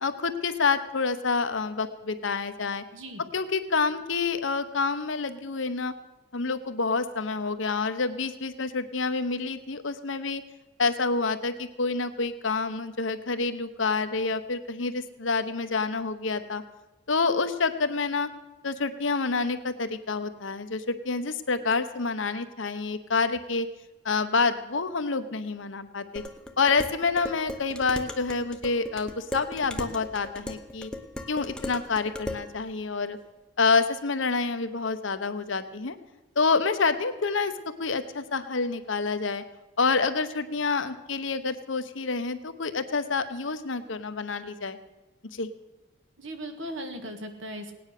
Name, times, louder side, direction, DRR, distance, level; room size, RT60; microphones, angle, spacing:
voice 1, 0.0-2.8 3.3-5.9 6.3-10.4 10.8-16.6 17.1-18.3 18.6-23.7 24.0-26.2 26.6-30.9 31.3-33.2 33.6-36.0 36.4-37.5 37.8-39.4 39.8-44.8 45.3-45.5, left 4 dB, 70° left, 9 dB, 1.0 m, -28 dB
Dishes pots and pans, 26.2-32.5, left 1 dB, 5° left, 0.8 m, -37 dB
voice 2, 46.2-47.7, equal, 70° right, 6 dB, 1.7 m, -37 dB
18.0 x 9.6 x 6.6 m, 1.1 s
head